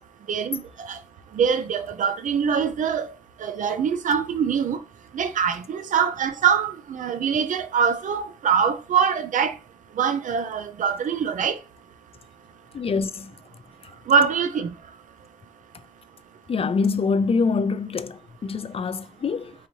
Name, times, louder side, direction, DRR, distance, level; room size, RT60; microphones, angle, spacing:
voice 1, 0.3-1.0 1.4-3.1 3.4-4.8 5.1-9.6 10.0-11.6 14.1-14.7, right 7 dB, 85° right, 0.4 m, -23 dB
voice 2, 12.7-13.3 16.5-19.5, left 4 dB, 50° left, 0.4 m, -25 dB
4.8 x 2.7 x 2.9 m
cardioid pair, 75°, 13 cm